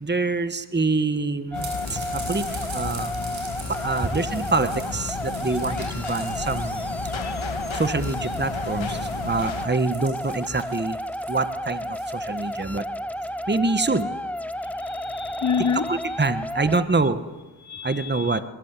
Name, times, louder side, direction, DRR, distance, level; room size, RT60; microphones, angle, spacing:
voice 1, 0.0-3.1 3.7-6.9 7.7-11.0 11.3-12.8 13.5-14.1 15.9-17.2 17.8-18.4, right 3 dB, 25° right, 11 dB, 1.4 m, -26 dB
sound 1, 1.5-9.7, left 5 dB, 85° left, 2.4 m, -34 dB
sound 2, 1.5-16.9, equal, 5° left, 0.9 m, -32 dB
sound 3, 1.6-12.7, right 4 dB, 85° right, 7.8 m, -43 dB
voice 2, 14.8-15.9 17.6-18.4, left 6 dB, 40° left, 16 dB, 1.1 m, -28 dB
24.0 x 22.0 x 8.4 m, 1.2 s
cardioid pair, 60°, 45 cm